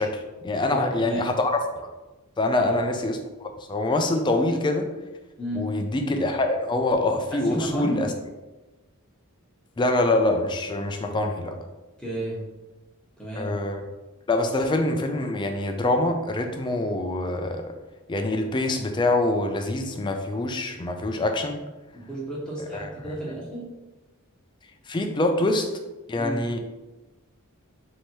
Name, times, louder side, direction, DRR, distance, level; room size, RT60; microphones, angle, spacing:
voice 1, 0.0-1.9 2.4-4.9 5.5-8.1 9.8-11.6 13.4-13.8 14.3-17.7 18.1-21.6 22.7-22.9 24.9-25.7 26.1-26.6, left 2 dB, 20° left, 5 dB, 0.3 m, -25 dB
voice 2, 0.7-1.3 2.6-2.8 5.4-5.7 7.3-8.0 12.0-12.4 13.2-13.5 21.9-23.7 26.2-26.4, right 1 dB, 5° left, -6 dB, 1.0 m, -32 dB
3.2 x 2.8 x 4.4 m, 1.1 s
head